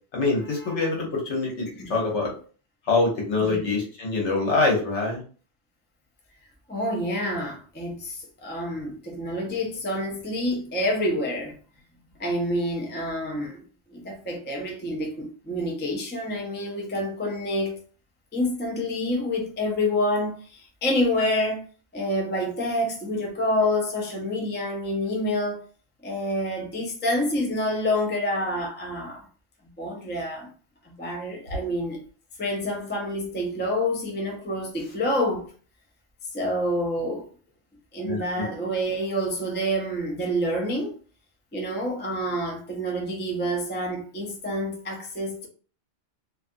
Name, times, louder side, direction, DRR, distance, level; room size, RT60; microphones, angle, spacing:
voice 1, 0.1-2.3 2.9-5.2 38.0-38.4, left 3 dB, 70° left, 1.3 m, -25 dB
voice 2, 6.7-11.5 12.2-13.6 13.9-17.8 18.3-21.6 21.9-25.6 26.0-29.2 29.8-30.5 30.8-32.0 32.4-35.5 36.3-37.3 37.9-41.0 41.5-45.5, left 1 dB, 15° left, 0.4 m, -27 dB
2.7 x 2.4 x 2.5 m
omnidirectional pair, 1.3 m